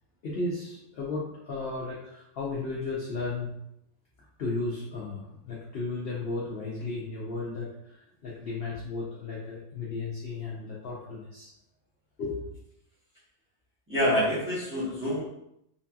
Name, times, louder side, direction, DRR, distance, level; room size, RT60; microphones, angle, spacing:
voice 1, 0.2-3.5 4.4-11.5 12.2-12.6, left 3 dB, 60° left, -5 dB, 0.6 m, -34 dB
voice 2, 13.9-15.2, equal, 10° right, -9 dB, 0.8 m, -26 dB
2.9 x 2.7 x 2.2 m, 0.78 s
omnidirectional pair, 1.5 m